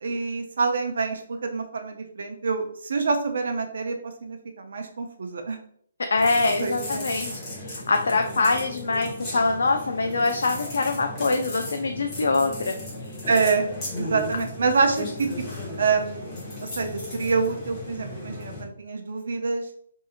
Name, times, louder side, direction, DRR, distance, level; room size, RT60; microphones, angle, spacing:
voice 1, 0.0-5.6 6.4-7.0 13.3-13.7 14.0-15.3 15.8-16.3 16.8-19.6, right 4 dB, 65° right, 5 dB, 0.5 m, -26 dB
voice 2, 6.1-12.7, left 3 dB, 85° left, 4 dB, 0.3 m, -24 dB
sound 1, 6.1-18.6, left 1 dB, 20° left, 0.8 m, -36 dB
2.7 x 2.6 x 2.4 m, 0.63 s
hypercardioid pair, 170°, 0 cm